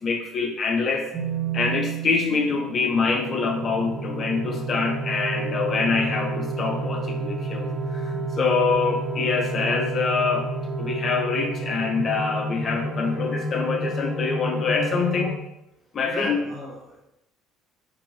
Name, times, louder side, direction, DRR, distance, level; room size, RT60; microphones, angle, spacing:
voice 1, 0.0-1.1 1.5-10.5 10.8-15.4 15.9-16.4, left 4 dB, 40° left, 3 dB, 0.5 m, -25 dB
sound 1, 1.1-15.3, right 2 dB, 35° right, 0.6 m, -30 dB
voice 2, 16.1-17.0, left 1 dB, 15° left, -3 dB, 1.1 m, -35 dB
2.6 x 2.6 x 2.9 m, 0.82 s
figure-of-eight pair, 55°, 0 cm